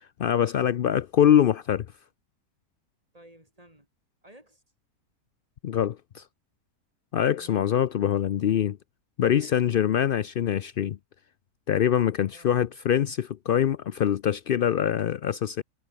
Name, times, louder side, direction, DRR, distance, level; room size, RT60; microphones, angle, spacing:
voice 1, 0.0-1.9 5.6-6.2 7.1-8.8 9.2-11.0 11.7-15.6, left 9 dB, 85° left, 0.4 m, -24 dB
voice 2, 3.1-3.9 4.2-4.6 7.4-7.7 9.4-9.7 12.3-12.6, right 1 dB, 25° right, 6.8 m, -54 dB
omnidirectional pair, 1.6 m